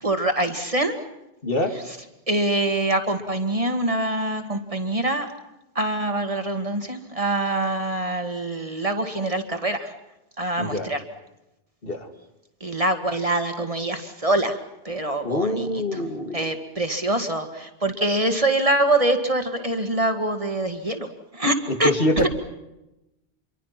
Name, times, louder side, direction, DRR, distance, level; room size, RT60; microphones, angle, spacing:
voice 1, 0.0-1.0 2.3-5.3 5.8-9.9 10.4-11.0 12.6-14.6 14.8-16.0 16.3-21.1 21.3-21.9 22.2-22.3, right 1 dB, 35° right, 6 dB, 2.1 m, -24 dB
voice 2, 1.4-1.7 10.6-10.9 11.8-12.1 15.2-16.4 21.8-22.3, left 1 dB, 60° left, 5 dB, 2.7 m, -24 dB
28.0 x 24.0 x 5.9 m, 0.93 s
omnidirectional pair, 1.1 m